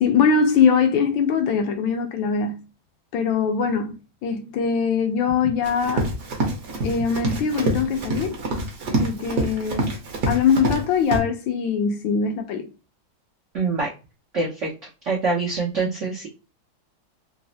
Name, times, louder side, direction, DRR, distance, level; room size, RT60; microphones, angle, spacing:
voice 1, 0.0-2.6 3.1-3.9 4.2-6.1 6.8-8.4 8.9-9.9 10.3-12.7, left 6 dB, 75° left, 1.2 m, -22 dB
Run, 5.6-10.8 11.1-11.2, right 2 dB, 60° right, 1.0 m, -26 dB
voice 2, 13.5-13.9 14.3-14.7 15.0-16.3, right 3 dB, 75° right, 0.6 m, -24 dB
3.9 x 2.0 x 2.6 m
omnidirectional pair, 2.4 m